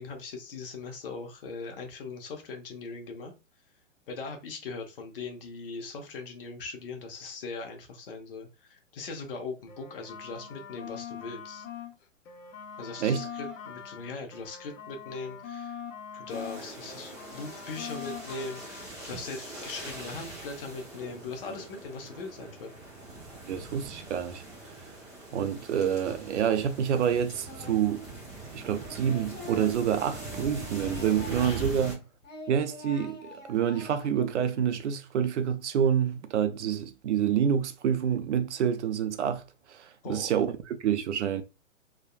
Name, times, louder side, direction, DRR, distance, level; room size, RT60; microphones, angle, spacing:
voice 1, 0.0-3.3 4.1-11.7 12.8-15.8 16.1-22.8 31.4-31.7 40.0-40.3, left 4 dB, 45° left, 0.7 m, -40 dB
sound 1, 9.6-11.9 12.3-16.6 16.9-18.9, left 8 dB, 85° left, 0.8 m, -42 dB
sound 2, 16.3-31.9, right 2 dB, 15° right, 0.7 m, -42 dB
voice 2, 23.5-24.4 25.3-28.1 28.5-32.0 32.5-39.4 39.7-40.5 40.8-41.4, right 8 dB, 65° right, 0.5 m, -27 dB
Singing, 27.5-28.0 28.3-31.9 32.2-34.3, left 2 dB, 30° left, 1.6 m, -45 dB
3.4 x 2.2 x 2.2 m
hypercardioid pair, 165°, 39 cm